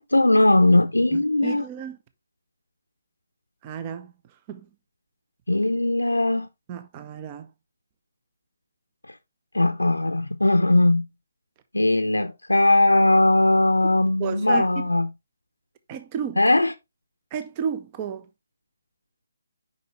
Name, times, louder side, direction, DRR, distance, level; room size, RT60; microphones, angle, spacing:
voice 1, 0.0-1.6 5.5-6.5 9.5-11.0 11.7-15.1 16.4-16.7, left 1 dB, 80° left, 0.6 m, -19 dB
voice 2, 1.1-2.0 3.6-4.1 4.5-4.7 6.7-7.5 14.2-14.9 15.9-16.4 17.3-18.2, right 8 dB, 25° right, 0.6 m, -32 dB
6.5 x 5.4 x 3.0 m
figure-of-eight pair, 145°, 0 cm